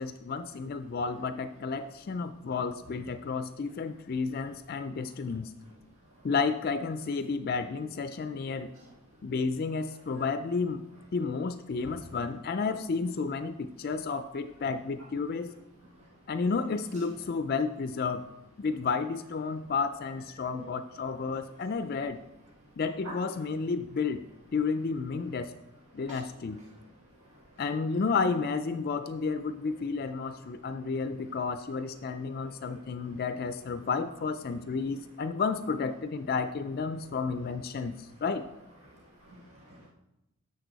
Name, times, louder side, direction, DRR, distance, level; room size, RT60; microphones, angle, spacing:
voice 1, 0.0-5.5 6.2-8.7 9.2-10.8 11.1-15.5 16.3-18.2 18.6-22.2 22.8-24.3 24.5-25.5 25.9-26.6 27.6-38.4, left 4 dB, 45° left, 10 dB, 0.4 m, -31 dB
voice 2, 38.8-39.9, right 1 dB, 90° right, -3 dB, 1.5 m, -47 dB
10.5 x 7.0 x 4.0 m, 0.91 s
head